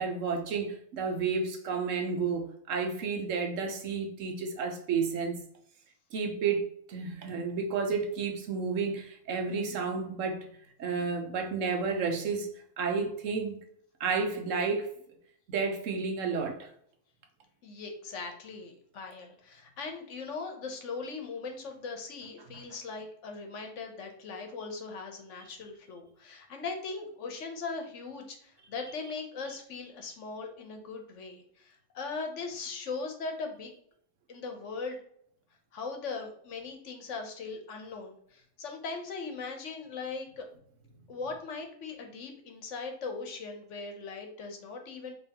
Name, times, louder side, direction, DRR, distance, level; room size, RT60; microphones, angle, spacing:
voice 1, 0.0-5.4 6.1-10.5 10.8-12.5 12.8-13.6 14.0-14.9 15.5-16.7, right 5 dB, 85° right, 1.2 m, -31 dB
voice 2, 17.6-33.7 34.3-35.0 35.7-40.5 41.1-45.1, left 4 dB, 75° left, 1.2 m, -39 dB
5.3 x 3.1 x 2.9 m
omnidirectional pair, 1.3 m